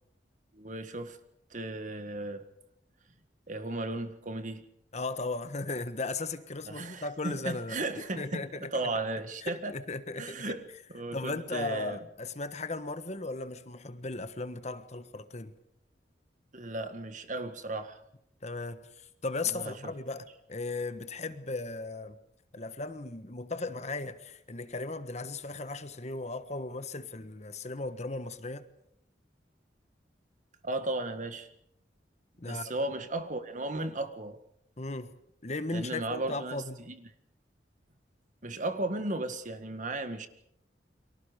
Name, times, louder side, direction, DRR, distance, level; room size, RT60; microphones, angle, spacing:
voice 1, 0.5-1.2 1.5-2.5 3.5-4.7 6.7-9.7 10.2-12.0 16.5-18.0 19.5-19.8 30.6-31.5 32.5-34.4 35.7-37.0 38.4-40.3, right 2 dB, 45° right, 1.8 m, -35 dB
voice 2, 4.9-8.7 9.4-10.5 11.1-15.5 18.4-22.2 22.5-28.6 32.4-32.7 34.8-35.1 35.4-36.8, left 3 dB, 40° left, 1.4 m, -36 dB
30.0 x 24.0 x 5.2 m
head